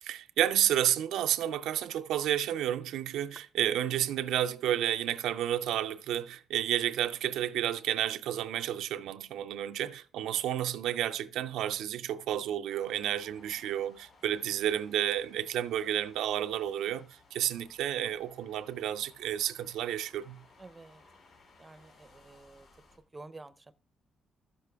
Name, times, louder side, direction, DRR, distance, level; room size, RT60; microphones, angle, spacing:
voice 1, 0.0-20.4, right 11 dB, 85° right, 0.4 m, -31 dB
sound 1, 12.7-23.0, left 3 dB, 70° left, 2.9 m, -61 dB
voice 2, 20.6-21.0 21.6-22.7 23.1-23.7, right 2 dB, 20° right, 0.6 m, -50 dB
12.5 x 6.8 x 3.4 m
cardioid pair, 90°, 0 cm